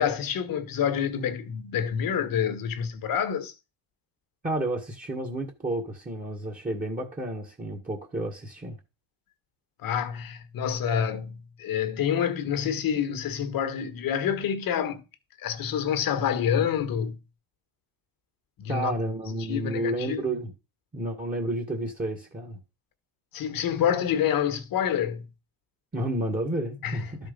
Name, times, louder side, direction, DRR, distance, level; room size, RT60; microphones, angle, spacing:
voice 1, 0.0-3.5 9.8-15.0 15.4-17.2 18.6-18.9 19.5-20.3 23.3-25.3 26.8-27.0, left 8 dB, 50° left, 1.4 m, -27 dB
voice 2, 4.4-8.8 18.7-20.5 20.9-22.6 25.9-27.2, right 1 dB, 20° right, 1.7 m, -31 dB
12.0 x 4.5 x 5.3 m
cardioid pair, 125°, 44 cm